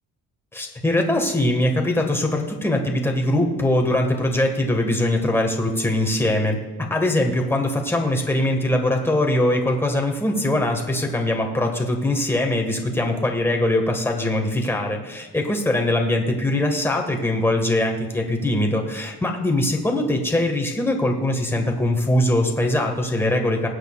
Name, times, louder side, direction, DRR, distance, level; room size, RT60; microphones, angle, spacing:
voice 1, 0.5-6.6 6.9-23.7, left 1 dB, 10° left, 2 dB, 1.7 m, -22 dB
20.5 x 8.1 x 2.4 m, 1.3 s
cardioid pair, 120°, 30 cm